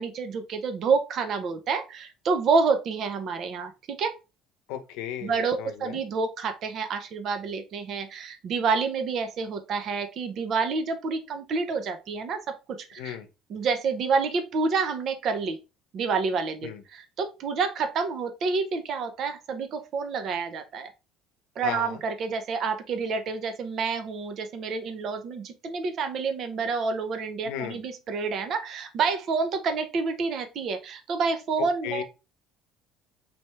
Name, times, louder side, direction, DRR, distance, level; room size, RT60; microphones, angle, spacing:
voice 1, 0.0-4.1 5.2-12.4 12.9-13.2 13.5-15.6 15.9-20.9 21.6-32.0, right 4 dB, 40° right, 0.6 m, -28 dB
voice 2, 4.7-6.0 13.0-13.3 16.6-16.8 21.6-22.0 27.4-27.8 31.6-32.0, left 10 dB, 80° left, 0.8 m, -35 dB
4.2 x 3.3 x 3.1 m
cardioid pair, 170°, 0 cm